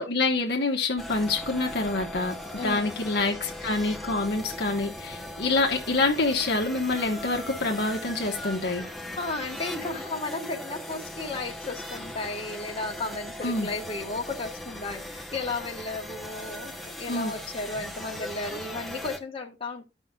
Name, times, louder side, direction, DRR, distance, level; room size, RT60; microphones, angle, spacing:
voice 1, 0.0-2.3 2.6-8.8 13.4-13.7 17.1-17.3, left 3 dB, 60° left, 1.1 m, -26 dB
sound 1, 1.0-19.2, left 1 dB, ahead, 0.8 m, -39 dB
voice 2, 2.6-2.9 9.2-19.9, left 3 dB, 30° left, 1.3 m, -34 dB
14.0 x 5.5 x 2.3 m
head